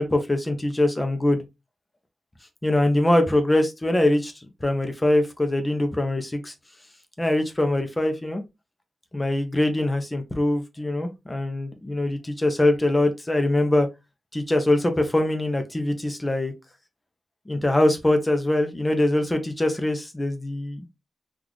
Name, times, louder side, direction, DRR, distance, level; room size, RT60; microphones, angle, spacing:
voice 1, 0.0-1.4 2.6-6.5 7.2-8.4 9.1-13.9 14.3-16.5 17.5-20.9, left 1 dB, 15° left, 0.6 m, -23 dB
3.9 x 2.4 x 3.0 m
wide cardioid pair, 160°, 0 cm